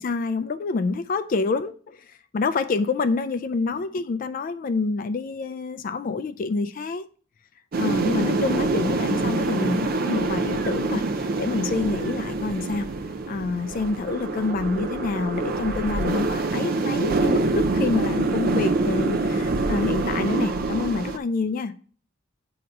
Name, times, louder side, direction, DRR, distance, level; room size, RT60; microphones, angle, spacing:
voice 1, 0.0-7.1 7.8-12.9 13.3-21.7, left 3 dB, 45° left, 0.3 m, -27 dB
sound 1, 7.7-21.2, right 3 dB, 50° right, 0.5 m, -25 dB
7.7 x 2.9 x 5.2 m
head